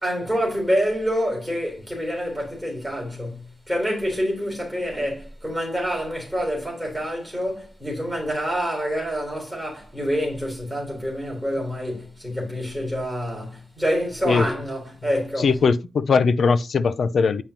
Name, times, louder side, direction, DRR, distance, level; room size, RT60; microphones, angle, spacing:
voice 1, 0.0-15.6, equal, ahead, 3.7 m, -27 dB
voice 2, 15.4-17.4, left 5 dB, 60° left, 0.5 m, -20 dB
9.2 x 5.1 x 2.9 m
wide cardioid pair, 170°, 0 cm